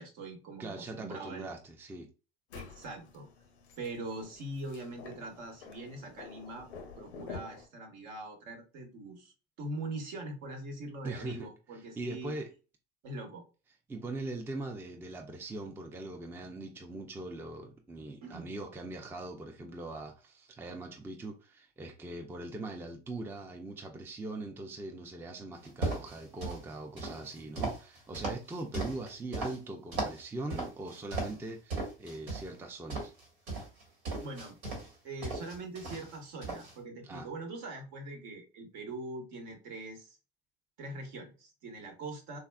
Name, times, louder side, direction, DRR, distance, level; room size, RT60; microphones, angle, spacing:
voice 1, 0.0-1.5 2.5-3.3 3.8-6.7 7.0-12.3 13.0-13.4 18.2-18.5 34.2-34.6 35.0-40.2 40.8-42.4, right 2 dB, 60° right, 1.1 m, -42 dB
voice 2, 0.6-2.1 11.0-11.5 12.0-12.5 13.9-33.1 37.0-37.3, right 2 dB, 5° right, 0.4 m, -41 dB
sound 1, 2.5-7.7, left 5 dB, 85° left, 0.6 m, -49 dB
sound 2, 25.7-26.6 27.0-29.6 29.9-30.2 30.5-31.4 31.7-32.5 32.9-34.9 35.2-36.2 36.4-36.7, right 2 dB, 80° right, 1.4 m, -36 dB
3.5 x 2.2 x 2.2 m
hypercardioid pair, 80°, 32 cm